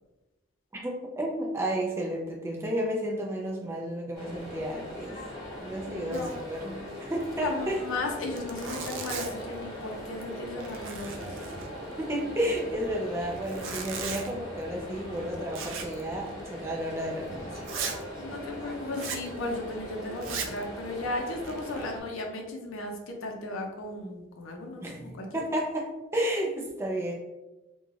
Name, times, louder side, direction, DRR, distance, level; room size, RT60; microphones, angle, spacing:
voice 1, 0.7-5.2 5.6-7.8 12.0-17.7 24.8-27.1, equal, 15° right, -1 dB, 0.3 m, -32 dB
sound 1, 4.1-22.0, equal, 15° left, 0.7 m, -40 dB
voice 2, 5.9-6.4 7.4-11.4 18.2-25.3, left 2 dB, 90° left, 2 dB, 0.5 m, -35 dB
Zipper (clothing), 6.1-6.5 6.8-6.9 7.2-7.3 7.9-8.0 8.3-9.5 10.0-10.3 10.6-12.0 13.3-14.3 15.5-16.0 16.3-16.4 17.0-17.1 17.6-18.0 18.9-19.3 20.2-20.6 21.2-21.8, right 5 dB, 80° right, 0.4 m, -37 dB
2.4 x 2.2 x 3.1 m, 1.0 s
head